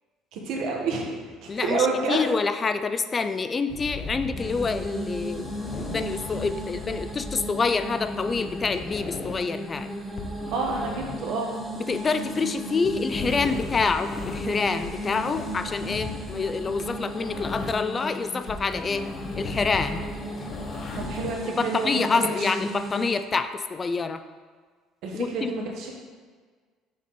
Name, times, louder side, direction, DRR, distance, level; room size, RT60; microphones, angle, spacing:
voice 1, 0.3-2.2 10.5-11.5 21.0-22.2 25.0-26.0, right 4 dB, 70° right, 0 dB, 1.2 m, -29 dB
voice 2, 1.5-5.5 5.8-9.9 11.8-19.0 19.4-20.0 21.5-24.2 25.1-25.5, left 4 dB, 30° left, 10 dB, 0.3 m, -27 dB
sound 1, 3.7-18.0 18.3-21.4, left 3 dB, 50° left, 0.7 m, -37 dB
Creepy music, 4.4-23.3, right 1 dB, 5° right, 0.9 m, -36 dB
6.5 x 3.6 x 4.1 m, 1.5 s
supercardioid pair, 100°, 0 cm